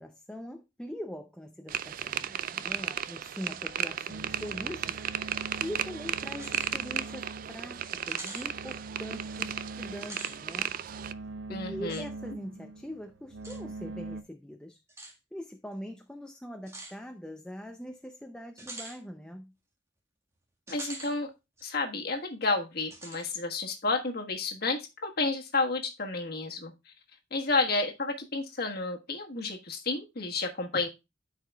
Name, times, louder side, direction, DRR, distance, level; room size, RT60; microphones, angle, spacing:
voice 1, 0.0-10.8 11.5-19.5, equal, 5° left, 0.5 m, -42 dB
sound 1, 1.7-11.1, right 10 dB, 45° right, 0.3 m, -35 dB
sound 2, 4.1-14.2, right 3 dB, 75° right, 0.7 m, -43 dB
sound 3, 6.3-6.7 7.2-7.3 8.1-8.5 9.9-10.4 11.9-12.1 13.4-13.6 14.9-15.1 16.7-17.0 18.6-19.0 20.7-21.1 21.6-21.7 22.9-23.3, right 2 dB, 15° right, 1.7 m, -43 dB
voice 2, 11.5-12.0 20.7-21.3 21.6-26.7 27.3-30.9, left 3 dB, 55° left, 1.4 m, -31 dB
12.5 x 4.9 x 2.3 m
head